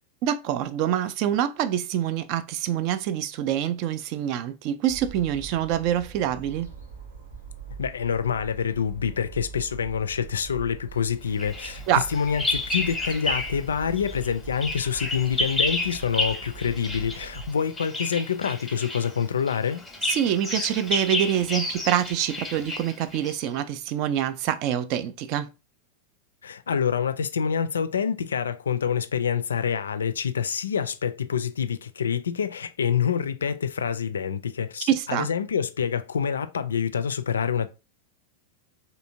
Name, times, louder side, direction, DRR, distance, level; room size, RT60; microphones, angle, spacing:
voice 1, 0.2-6.7 11.9-12.1 20.0-25.5 34.9-35.3, right 10 dB, 45° right, 0.3 m, -26 dB
sound 1, 4.9-17.5, right 6 dB, 75° right, 1.0 m, -42 dB
voice 2, 7.8-11.8 12.1-19.8 26.4-37.7, left 7 dB, 70° left, 0.3 m, -27 dB
Bird vocalization bird call bird song, 11.4-13.7 14.0-23.5, left 2 dB, 5° left, 0.8 m, -31 dB
3.3 x 2.7 x 2.7 m
figure-of-eight pair, 90°, 0 cm